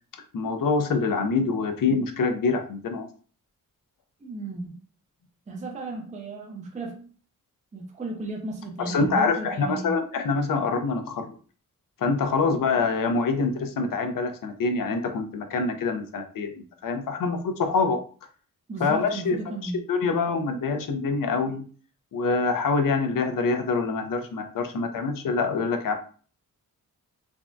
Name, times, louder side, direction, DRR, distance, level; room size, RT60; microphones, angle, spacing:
voice 1, 0.3-3.1 8.8-11.3 12.0-18.0 18.8-21.6 22.1-26.0, left 4 dB, 70° left, 7 dB, 0.5 m, -25 dB
voice 2, 4.2-4.8 5.5-7.1 7.7-10.0 18.7-19.8, right 2 dB, 20° right, 1 dB, 0.4 m, -34 dB
3.4 x 2.1 x 2.5 m, 0.41 s
wide cardioid pair, 180°, 35 cm